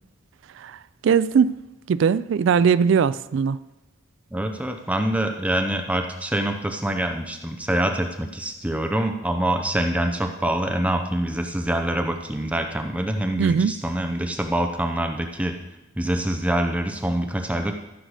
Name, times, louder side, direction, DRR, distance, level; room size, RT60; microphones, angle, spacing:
voice 1, 0.6-1.6 1.9-3.6 13.4-13.7, right 6 dB, 65° right, 0.3 m, -20 dB
voice 2, 4.3-15.6 16.0-17.7, right 1 dB, 5° right, 0.6 m, -25 dB
14.0 x 6.5 x 4.9 m
head